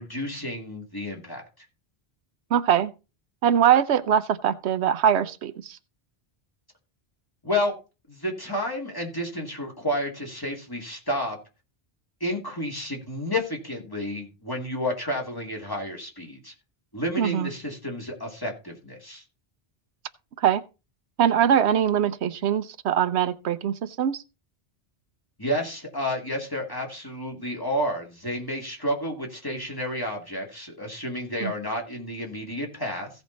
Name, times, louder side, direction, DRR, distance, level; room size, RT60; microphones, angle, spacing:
voice 1, 0.0-1.7 7.4-7.7 8.1-11.4 12.2-16.5 16.9-19.2 25.4-33.1, left 1 dB, 20° left, 2.5 m, -31 dB
voice 2, 2.5-2.9 3.4-5.8 17.2-17.5 20.4-20.6 21.2-24.2 31.4-31.5, right 9 dB, 90° right, 1.0 m, -22 dB
16.0 x 5.4 x 4.0 m
omnidirectional pair, 1.1 m